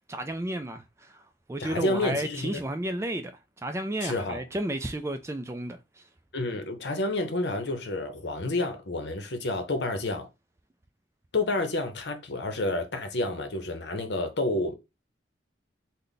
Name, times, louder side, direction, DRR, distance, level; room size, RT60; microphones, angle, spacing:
voice 1, 0.1-1.2 1.5-5.8, right 1 dB, 15° right, 0.3 m, -32 dB
voice 2, 1.6-2.6 4.0-4.4 6.3-10.3 11.3-14.7, left 2 dB, 70° left, 0.8 m, -29 dB
3.3 x 2.2 x 3.9 m
head